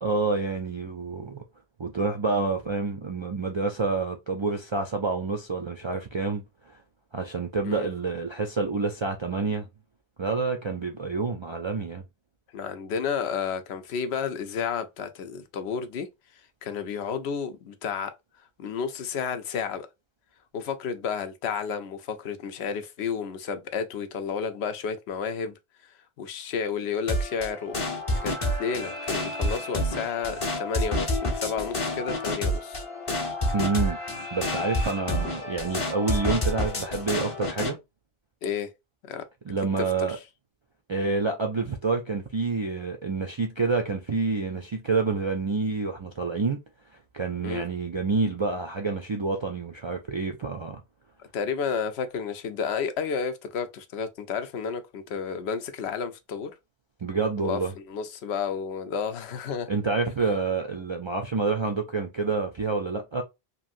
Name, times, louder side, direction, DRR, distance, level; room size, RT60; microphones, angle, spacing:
voice 1, 0.0-1.4 1.8-6.8 7.1-9.7 10.2-12.0 33.5-34.0 34.3-37.8 39.5-40.2 40.9-46.6 47.1-50.8 57.0-57.7 59.7-63.2, right 4 dB, 50° right, 0.3 m, -28 dB
voice 2, 12.5-16.1 16.6-18.1 18.6-19.9 20.5-25.6 26.2-27.8 28.2-32.8 38.4-38.7 39.1-39.2 39.8-40.2 47.4-47.6 51.3-56.5 57.4-57.6 57.9-59.7, left 6 dB, 80° left, 0.9 m, -31 dB
sound 1, 27.1-37.7, left 1 dB, 35° left, 0.8 m, -29 dB
3.0 x 2.6 x 2.5 m
omnidirectional pair, 1.1 m